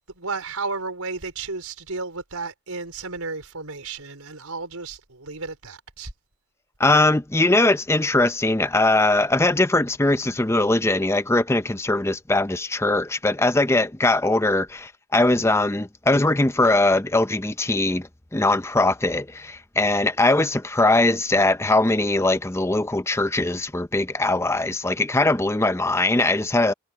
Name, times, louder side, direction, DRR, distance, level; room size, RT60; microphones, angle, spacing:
voice 1, 0.1-6.1, right 4 dB, 80° right, 4.6 m, -33 dB
voice 2, 6.8-26.7, left 2 dB, 10° left, 0.6 m, -21 dB
head